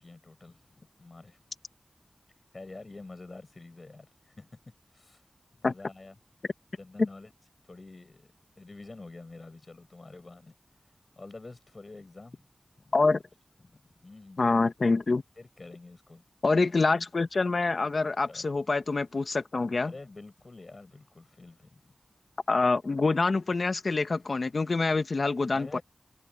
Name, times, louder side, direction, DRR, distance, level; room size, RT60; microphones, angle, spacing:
voice 1, 0.0-1.4 2.5-4.5 4.9-5.2 5.5-6.2 6.8-7.3 7.7-10.5 11.2-12.4 12.8-13.0 13.6-14.4 15.4-16.2 18.3-18.5 19.8-21.9 25.5-25.8, left 3 dB, 55° left, 7.2 m, -48 dB
voice 2, 14.4-15.2 16.4-19.9 22.5-25.8, left 3 dB, 70° left, 1.3 m, -26 dB
cardioid pair, 40°, 0 cm